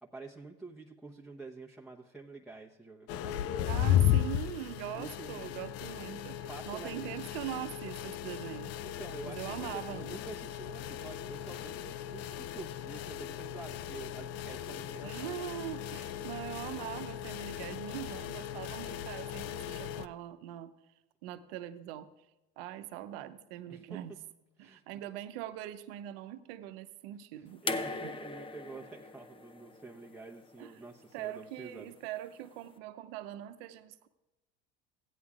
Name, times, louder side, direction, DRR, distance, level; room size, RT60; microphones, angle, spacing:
voice 1, 0.0-3.4 4.9-5.6 6.5-7.0 8.8-15.4 23.7-24.0 24.6-24.8 27.6-31.9, right 3 dB, ahead, -1 dB, 1.0 m, -48 dB
sound 1, 3.1-20.1, left 11 dB, 50° left, 0.5 m, -35 dB
voice 2, 3.6-8.7 9.2-10.2 15.0-20.7 21.2-22.1 22.6-24.2 24.6-28.0 30.6-30.7 31.1-34.1, right 12 dB, 70° right, 12 dB, 0.8 m, -42 dB
sound 2, 27.7-30.8 32.0-32.1, left 3 dB, 15° left, 0.8 m, -39 dB
16.0 x 9.9 x 2.5 m, 1.0 s
hypercardioid pair, 70°, 31 cm